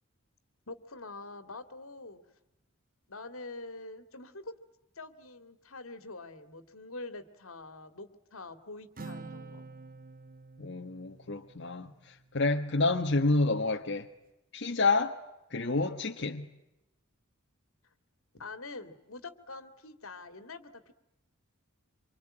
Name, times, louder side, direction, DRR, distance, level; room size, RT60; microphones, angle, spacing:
voice 1, 0.7-2.2 3.1-4.5 5.0-9.7 18.3-20.9, left 3 dB, 80° left, 2.5 m, -45 dB
Acoustic guitar, 9.0-12.6, right 3 dB, 40° right, 1.4 m, -48 dB
voice 2, 10.6-14.1 14.5-15.2 15.5-16.5, left 3 dB, 55° left, 1.5 m, -29 dB
26.5 x 25.0 x 8.9 m
head